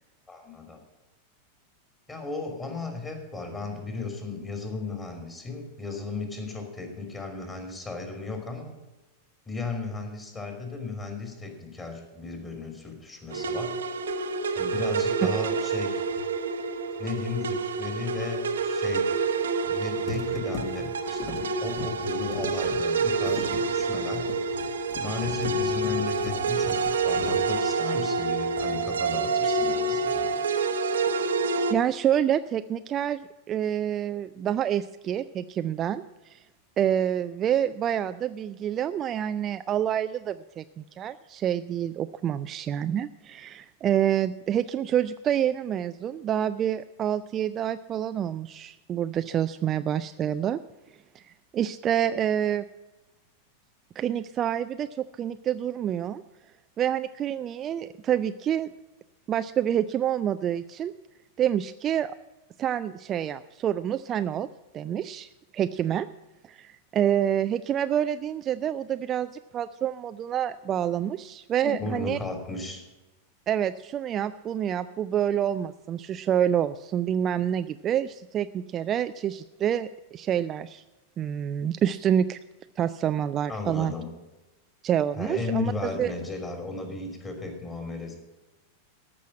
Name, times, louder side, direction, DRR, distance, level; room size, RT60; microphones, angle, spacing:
voice 1, 0.3-0.8 2.1-8.7 9.5-13.8 14.5-16.0 17.0-19.1 19.6-24.3 25.0-30.3 71.6-72.8 83.5-84.1 85.1-88.1, left 3 dB, 15° left, 4 dB, 3.0 m, -35 dB
sound 1, 13.3-31.7, right 4 dB, 65° right, 0.9 m, -27 dB
sound 2, 16.1-16.3 19.4-19.8 20.1-28.3 28.6-29.0, left 4 dB, 40° left, 2.1 m, -40 dB
voice 2, 31.7-36.0 36.3-36.4 36.8-50.6 51.2-51.3 51.5-52.6 54.0-54.9 55.2-56.2 56.8-58.7 59.3-60.9 61.4-62.1 62.6-64.5 64.7-66.1 66.5-72.2 73.5-80.8 81.2-82.4 82.8-83.9 84.8-86.1, right 10 dB, 30° right, 12 dB, 0.3 m, -27 dB
13.5 x 6.2 x 8.6 m, 1.1 s
figure-of-eight pair, 90°, 0 cm